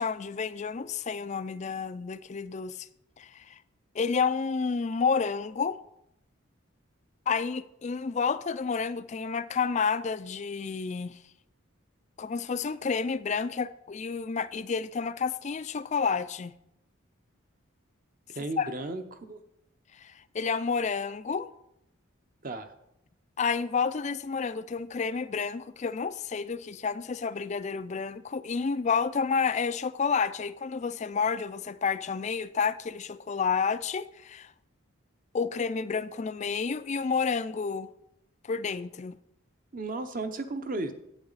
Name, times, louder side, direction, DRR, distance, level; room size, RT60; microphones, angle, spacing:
voice 1, 0.0-2.9 3.2-3.6 3.9-5.8 7.3-11.2 12.2-16.5 18.6-18.7 19.9-21.5 23.4-34.5 35.3-37.9 38.4-39.2, left 5 dB, 35° left, 0.3 m, -30 dB
voice 2, 18.4-19.4 22.4-22.7 39.7-40.9, right 2 dB, 40° right, 0.9 m, -34 dB
11.5 x 9.0 x 4.0 m
head